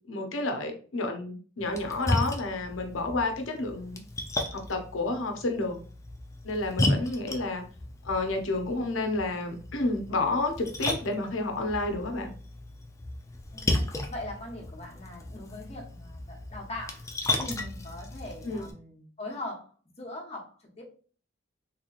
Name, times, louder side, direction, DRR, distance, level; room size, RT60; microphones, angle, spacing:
voice 1, 0.1-4.0 4.5-5.8 6.4-7.6 8.0-12.3 18.4-18.7, left 2 dB, 85° left, 4 dB, 0.7 m, -30 dB
Splash splatter, 1.6-18.7, left 2 dB, 15° left, 0.4 m, -34 dB
voice 2, 13.5-20.8, left 1 dB, 35° left, 0 dB, 0.9 m, -41 dB
3.4 x 2.9 x 2.4 m, 0.41 s
head